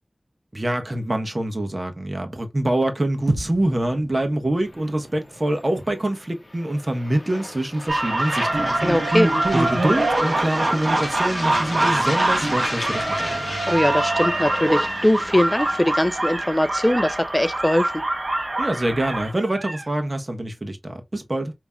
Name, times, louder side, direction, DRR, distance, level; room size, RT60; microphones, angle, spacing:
voice 1, 0.5-8.9 9.5-13.6 18.6-21.5, right 1 dB, 40° right, 1.2 m, -25 dB
sound 1, 3.3-7.6, right 2 dB, 80° right, 0.8 m, -36 dB
sound 2, 4.7-19.5, left 1 dB, 40° left, 0.9 m, -35 dB
sound 3, 7.9-19.9, right 2 dB, 65° right, 1.1 m, -24 dB
voice 2, 8.8-9.3 13.7-18.0, left 1 dB, 20° left, 0.4 m, -21 dB
5.2 x 3.0 x 2.3 m
wide cardioid pair, 50°, 0 cm